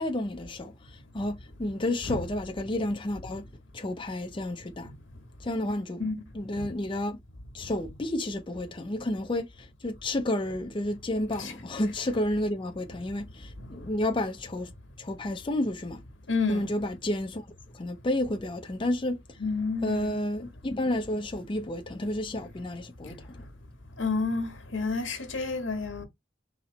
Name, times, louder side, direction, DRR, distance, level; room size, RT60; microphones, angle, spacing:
voice 1, 0.0-3.4 3.7-4.9 5.4-6.0 6.3-7.2 7.5-14.7 15.0-16.0 16.5-17.5 17.7-19.4 19.8-23.4, left 1 dB, 25° left, 0.5 m, -31 dB
voice 2, 16.3-16.7 19.4-20.2 23.0-23.1 24.0-26.0, left 4 dB, 85° left, 1.5 m, -30 dB
4.3 x 3.0 x 3.9 m
head